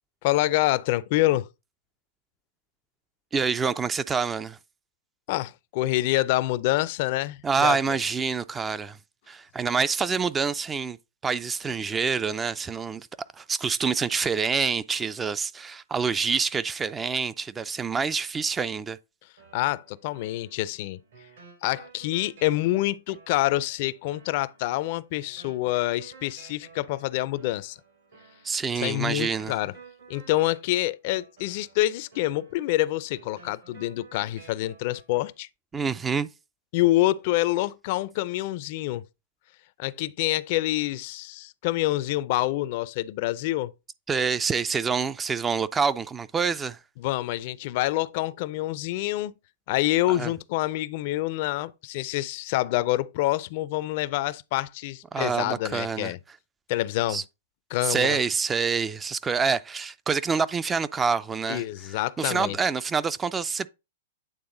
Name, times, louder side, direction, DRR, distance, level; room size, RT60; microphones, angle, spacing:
voice 1, 0.2-1.5 5.3-7.8 19.5-21.0 21.6-27.8 28.8-29.7 30.1-35.5 36.7-39.0 39.8-43.7 47.0-49.3 49.7-56.2 56.7-57.2 57.7-58.2 61.5-62.6, left 16 dB, 50° left, 0.4 m, -27 dB
voice 2, 3.3-4.6 7.4-9.0 9.3-11.0 11.2-13.1 13.4-19.0 28.4-29.5 35.7-36.3 44.1-46.8 50.2-50.3 55.1-56.1 57.1-57.2 57.8-61.6 62.2-63.7, right 5 dB, 15° right, 0.3 m, -26 dB
sound 1, 19.4-35.4, right 5 dB, 75° right, 4.3 m, -53 dB
8.8 x 3.4 x 3.8 m
hypercardioid pair, 120°, 0 cm